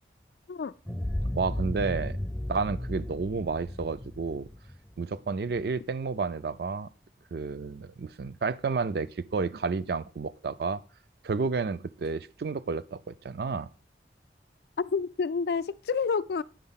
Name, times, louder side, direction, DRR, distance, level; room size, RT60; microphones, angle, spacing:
sound 1, 0.9-5.6, left 1 dB, 5° left, 0.4 m, -34 dB
voice 1, 1.4-2.2 2.5-4.5 5.0-6.9 7.3-10.8 11.2-13.7, right 4 dB, 65° right, 0.4 m, -31 dB
voice 2, 14.8-16.4, left 5 dB, 70° left, 0.3 m, -29 dB
9.2 x 4.3 x 5.6 m
head